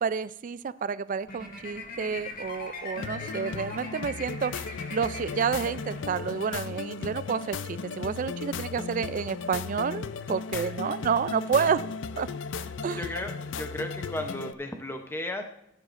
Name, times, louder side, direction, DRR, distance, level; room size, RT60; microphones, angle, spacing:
voice 1, 0.0-4.5 4.9-11.8 12.2-12.3 12.8-13.0, right 6 dB, 45° right, 15 dB, 0.3 m, -29 dB
sound 1, 1.3-6.5, left 3 dB, 50° left, 2.0 m, -41 dB
sound 2, 3.0-14.5, left 5 dB, 75° left, 0.5 m, -36 dB
voice 2, 10.5-11.0 11.6-11.7 12.6-15.4, left 1 dB, 15° left, 5 dB, 0.7 m, -36 dB
15.5 x 9.8 x 2.5 m, 0.81 s
head